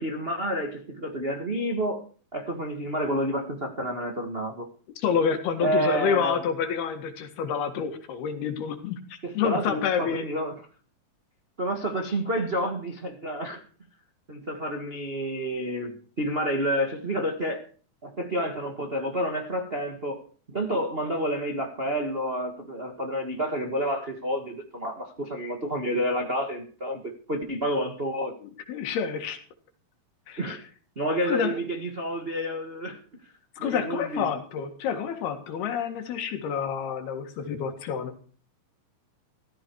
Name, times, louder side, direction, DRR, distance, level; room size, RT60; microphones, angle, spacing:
voice 1, 0.0-2.0 2.3-4.7 5.6-6.4 9.2-10.5 11.6-13.6 14.3-17.6 18.0-28.3 30.4-30.6 30.9-33.0 33.6-34.3, equal, 65° right, 0.5 m, -29 dB
voice 2, 5.0-10.3 28.4-29.4 30.3-30.4 31.3-31.6 33.6-38.2, left 7 dB, 80° left, 3.8 m, -28 dB
15.5 x 14.0 x 4.7 m
omnidirectional pair, 4.5 m